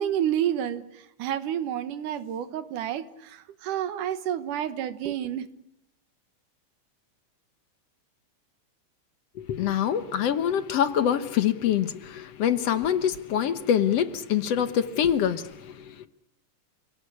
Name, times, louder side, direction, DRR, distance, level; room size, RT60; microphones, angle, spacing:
voice 1, 0.0-5.5, right 10 dB, 85° right, 2.9 m, -29 dB
voice 2, 9.4-16.1, left 9 dB, 60° left, 1.9 m, -25 dB
29.5 x 18.0 x 8.5 m
omnidirectional pair, 3.6 m